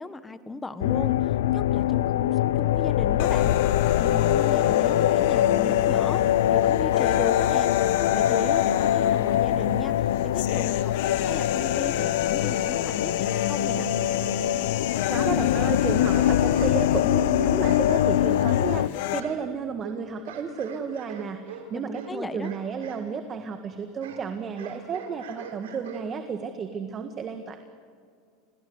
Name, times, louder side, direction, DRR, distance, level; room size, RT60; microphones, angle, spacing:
voice 1, 0.0-3.5 4.0-6.2 6.5-7.7 8.1-10.9 11.3-13.9 21.7-22.5, left 3 dB, 15° left, 12 dB, 1.6 m, -36 dB
sound 1, 0.8-18.9, left 12 dB, 90° left, 0.5 m, -23 dB
sound 2, 3.2-19.2, left 11 dB, 70° left, 1.4 m, -31 dB
voice 2, 15.1-27.6, right 6 dB, 35° right, 7 dB, 1.7 m, -32 dB
sound 3, 16.0-17.1 17.6-18.8 19.2-23.1 23.3-26.3, right 7 dB, 90° right, 3.9 m, -44 dB
28.5 x 20.5 x 8.2 m, 2.2 s
supercardioid pair, 115°, 0 cm